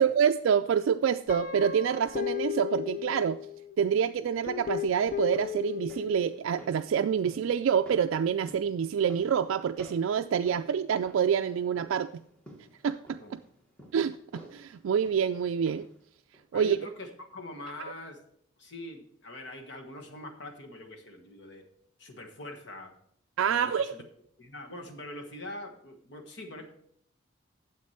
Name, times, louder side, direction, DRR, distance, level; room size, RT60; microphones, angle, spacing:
voice 1, 0.0-3.4 3.8-12.1 12.8-13.4 13.9-15.9 16.5-16.8 23.4-23.9, right 7 dB, 75° right, 8 dB, 0.3 m, -27 dB
Guitar, 1.3-3.7 4.4-6.4, left 10 dB, 40° left, 0.5 m, -35 dB
sound 1, 5.1-16.1 16.3-16.4, right 1 dB, 5° left, 1.3 m, -54 dB
voice 2, 16.5-18.2 18.6-21.6 22.0-22.9 23.4-24.0 24.4-26.7, left 1 dB, 55° left, 3 dB, 1.4 m, -43 dB
9.4 x 7.3 x 4.3 m, 0.68 s
head